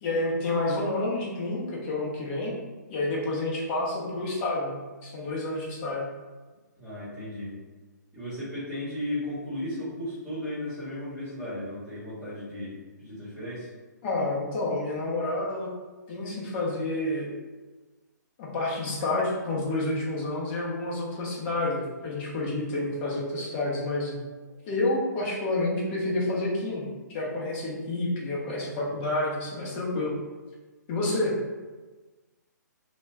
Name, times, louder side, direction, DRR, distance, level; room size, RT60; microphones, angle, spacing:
voice 1, 0.0-2.5 2.9-6.0 14.0-15.7 16.1-17.3 18.4-24.2 24.7-30.1 30.9-31.4, left 2 dB, 35° left, -4 dB, 0.7 m, -29 dB
voice 2, 6.8-7.5 8.1-13.7, left 1 dB, 5° right, -14 dB, 1.0 m, -35 dB
2.2 x 2.2 x 3.3 m, 1.3 s
figure-of-eight pair, 135°, 10 cm